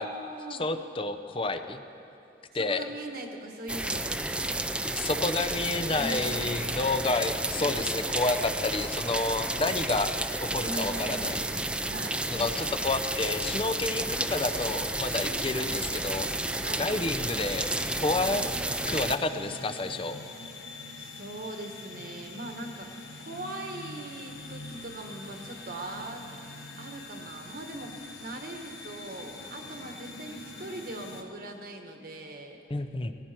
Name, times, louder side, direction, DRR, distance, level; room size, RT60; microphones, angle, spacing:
voice 1, 0.0-0.6 2.5-4.6 5.9-6.6 10.6-12.8 14.0-14.1 15.3-15.8 16.6-17.0 21.0-22.9 23.2-32.6, right 2 dB, 55° right, 3 dB, 1.5 m, -41 dB
voice 2, 0.5-1.8 2.5-2.8 4.9-10.1 10.4-11.5 12.3-16.3 16.8-17.7 18.0-18.4 18.9-20.2 32.7-33.1, left 3 dB, 30° left, 8 dB, 0.7 m, -30 dB
sound 1, 3.7-19.2, right 2 dB, 5° right, 0.4 m, -31 dB
sound 2, 14.1-31.2, left 2 dB, 75° left, 1.4 m, -45 dB
18.5 x 15.5 x 4.5 m, 2.7 s
head